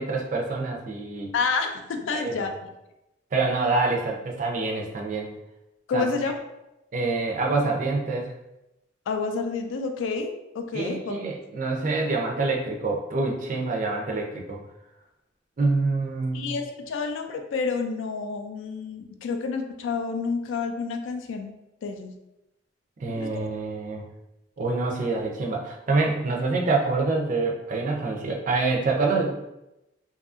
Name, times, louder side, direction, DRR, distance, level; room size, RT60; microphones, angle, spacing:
voice 1, 0.0-1.3 2.1-2.5 3.3-5.3 5.9-6.1 6.9-8.3 10.7-14.6 15.6-16.5 23.0-24.1 24.6-29.3, right 3 dB, 40° right, 1 dB, 0.4 m, -26 dB
voice 2, 1.3-2.7 5.9-6.3 9.1-11.2 16.3-21.5 21.8-22.1 23.1-23.3, left 4 dB, 80° left, 6 dB, 0.3 m, -29 dB
2.6 x 2.4 x 2.4 m, 0.93 s
head